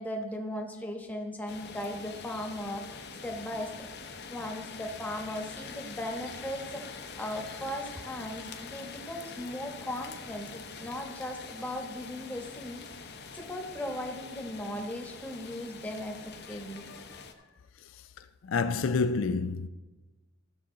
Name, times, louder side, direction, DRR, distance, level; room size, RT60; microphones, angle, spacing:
voice 1, 0.0-3.9 4.3-16.8, left 1 dB, 10° left, 1.2 m, -38 dB
sound 1, 1.5-17.3, left 5 dB, 55° left, 0.8 m, -45 dB
voice 2, 18.5-19.7, left 4 dB, 70° left, 0.4 m, -28 dB
15.0 x 6.9 x 3.8 m
head